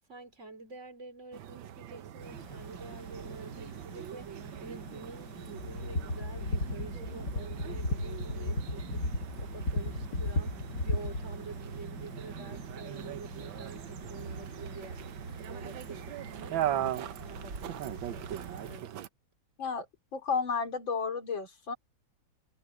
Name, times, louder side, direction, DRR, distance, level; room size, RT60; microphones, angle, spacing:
voice 1, 0.1-9.1 9.3-15.1 15.4-18.9, right 3 dB, 40° right, 3.7 m, -48 dB
sound 1, 1.3-19.1, right 11 dB, 85° right, 1.6 m, -41 dB
sound 2, 2.2-18.8, right 3 dB, 60° right, 4.5 m, -45 dB
sound 3, 5.6-11.2, left 2 dB, 55° left, 3.5 m, -34 dB
voice 2, 20.1-21.7, left 5 dB, 85° left, 3.9 m, -32 dB
omnidirectional pair, 2.1 m